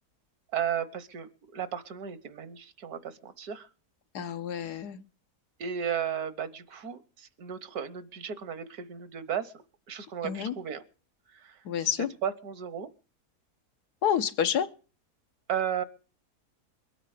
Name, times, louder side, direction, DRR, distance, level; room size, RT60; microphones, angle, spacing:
voice 1, 0.5-3.7 5.6-10.8 11.3-11.6 12.2-12.9 15.5-15.8, right 8 dB, 70° right, 14 dB, 1.5 m, -34 dB
voice 2, 4.1-5.0 10.2-10.5 11.6-12.1 14.0-14.7, left 9 dB, 80° left, 10 dB, 1.5 m, -28 dB
22.5 x 9.0 x 4.9 m, 0.38 s
omnidirectional pair, 1.7 m